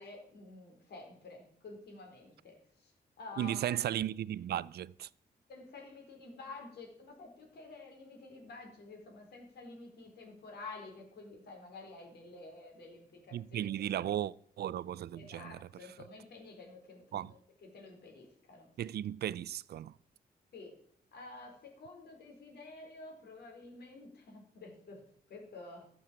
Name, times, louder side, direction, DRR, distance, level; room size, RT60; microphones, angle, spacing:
voice 1, 0.0-3.9 5.5-14.1 15.1-18.7 20.5-20.7 21.1-25.0 25.3-25.9, left 3 dB, 85° left, 4.4 m, -50 dB
voice 2, 3.4-5.1 13.3-15.6 17.1-17.3 18.8-19.9, right 11 dB, 75° right, 0.4 m, -35 dB
14.0 x 7.3 x 7.6 m
wide cardioid pair, 140°, 17 cm